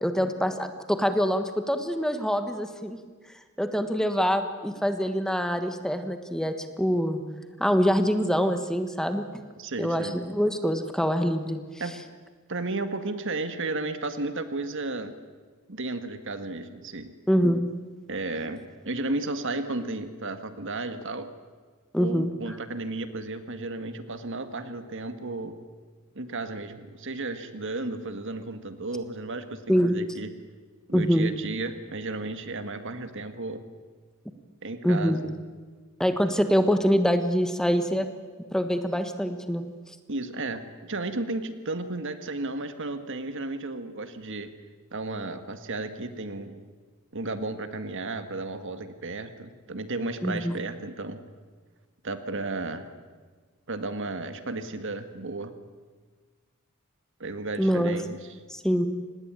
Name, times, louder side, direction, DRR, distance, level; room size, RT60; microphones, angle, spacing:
voice 1, 0.0-3.0 3.6-7.2 7.6-9.4 9.8-11.6 17.3-17.6 21.9-22.6 29.7-29.9 30.9-31.3 34.8-35.2 36.0-38.1 38.5-39.7 50.2-50.6 57.6-57.9 58.5-58.9, equal, 5° left, 8 dB, 1.4 m, -25 dB
voice 2, 9.6-10.2 11.8-11.9 12.5-15.1 15.7-17.1 18.1-21.3 22.0-25.5 26.1-30.3 30.9-33.6 34.6-35.3 40.1-44.5 44.9-46.6 47.1-51.2 52.0-52.9 53.7-55.5 57.2-58.2, right 2 dB, 60° right, 9 dB, 1.8 m, -33 dB
26.5 x 20.0 x 9.0 m, 1.5 s
head